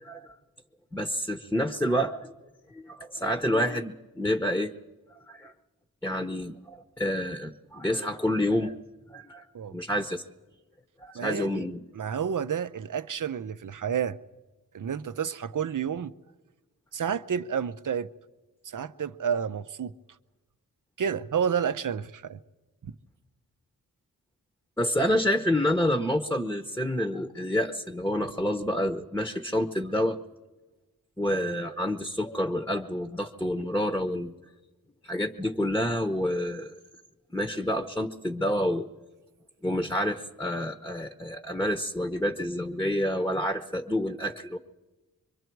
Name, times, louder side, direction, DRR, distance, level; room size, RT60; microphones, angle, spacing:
voice 1, 0.9-2.3 2.7-4.7 5.3-5.5 6.0-8.8 9.1-9.4 9.7-10.2 11.0-11.8 24.8-30.2 31.2-34.3 35.0-36.7 37.3-38.9 39.6-44.6, left 1 dB, 5° left, 1.0 m, -28 dB
voice 2, 11.1-11.7 11.9-14.2 14.7-16.1 16.9-18.1 18.6-19.9 21.0-22.4 22.8-22.9, right 7 dB, 60° right, 0.7 m, -30 dB
25.0 x 24.0 x 4.6 m
cardioid pair, 60°, 36 cm